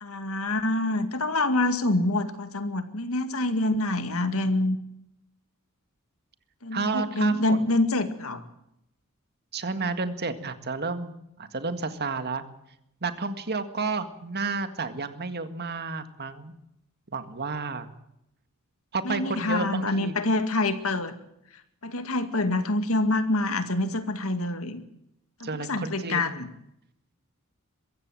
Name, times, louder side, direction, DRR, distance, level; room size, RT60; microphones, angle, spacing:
voice 1, 0.0-4.8 6.6-8.4 19.0-21.1 21.5-24.8 25.4-26.5, left 2 dB, 70° left, 9 dB, 2.1 m, -26 dB
voice 2, 6.7-7.6 9.5-11.1 11.4-12.4 13.0-16.5 17.1-17.9 18.9-20.1 25.4-26.3, right 4 dB, 50° right, 9 dB, 1.9 m, -31 dB
22.5 x 15.5 x 7.7 m, 0.81 s
head